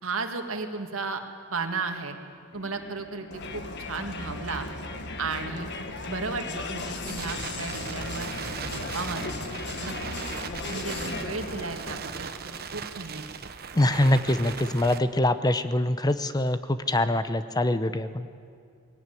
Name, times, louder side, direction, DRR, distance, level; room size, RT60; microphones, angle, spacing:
voice 1, 0.0-1.2 1.5-2.2 2.5-4.7 5.2-5.7 6.1-8.3 8.7-9.4 9.8-10.2 10.7-12.3 12.7-13.3, right 4 dB, 80° right, 5 dB, 1.9 m, -34 dB
sound 1, 2.5-11.6, equal, 85° left, 3.7 m, -48 dB
Crowd, 3.3-12.2, left 3 dB, 55° left, 1.5 m, -36 dB
Crackle, 5.7-15.0, right 6 dB, 50° right, 1.0 m, -39 dB
voice 2, 13.7-18.3, left 1 dB, 20° left, 12 dB, 0.7 m, -24 dB
20.0 x 17.5 x 9.3 m, 2.3 s
head